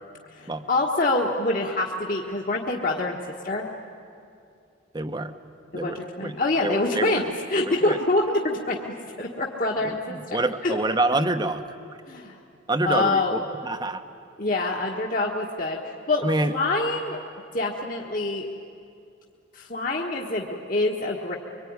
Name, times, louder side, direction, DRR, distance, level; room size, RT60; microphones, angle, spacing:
voice 1, 0.3-3.2 3.4-3.7 5.7-7.2 7.5-10.8 12.1-12.4 12.8-13.4 14.4-17.2 17.5-18.5 19.5-21.4, left 2 dB, 45° left, -1 dB, 1.5 m, -26 dB
voice 2, 4.9-5.3 5.7-6.4 6.6-7.2 7.6-8.0 9.8-11.7 12.7-14.0 16.2-16.5, right 2 dB, 20° right, 10 dB, 1.0 m, -27 dB
25.0 x 24.0 x 9.6 m, 2.6 s
head